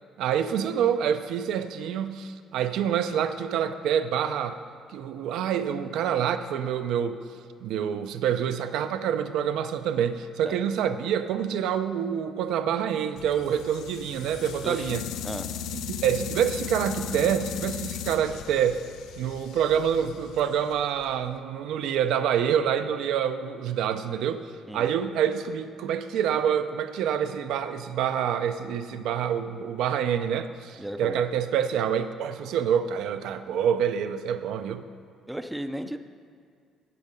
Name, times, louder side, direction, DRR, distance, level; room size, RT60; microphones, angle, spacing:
voice 1, 0.2-4.6 4.9-7.2 7.6-15.0 15.9-18.8 19.2-34.8, right 8 dB, 80° right, 10 dB, 0.5 m, -27 dB
sound 1, 13.2-21.3, left 8 dB, 75° left, 0.4 m, -37 dB
voice 2, 14.6-14.9 15.2-15.4 24.7-24.9 30.8-31.2 35.3-36.0, right 1 dB, 5° right, 9 dB, 0.4 m, -34 dB
8.4 x 8.2 x 5.2 m, 2.2 s
cardioid pair, 145°, 0 cm